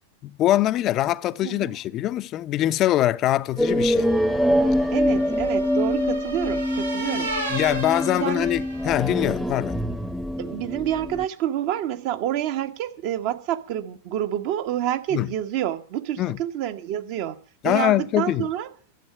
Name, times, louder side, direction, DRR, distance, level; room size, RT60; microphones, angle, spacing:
voice 1, 0.2-4.1 7.5-9.8 15.1-15.3 16.2-16.4 17.6-18.5, left 14 dB, 35° left, 0.7 m, -23 dB
voice 2, 1.4-1.7 4.9-7.3 8.1-8.5 10.4-17.4 17.6-18.7, right 11 dB, 45° right, 1.5 m, -28 dB
sound 1, 3.6-11.3, equal, ahead, 1.0 m, -24 dB
sound 2, 3.8-9.2, right 2 dB, 85° right, 4.5 m, -35 dB
12.5 x 7.5 x 9.2 m
figure-of-eight pair, 90°, 0 cm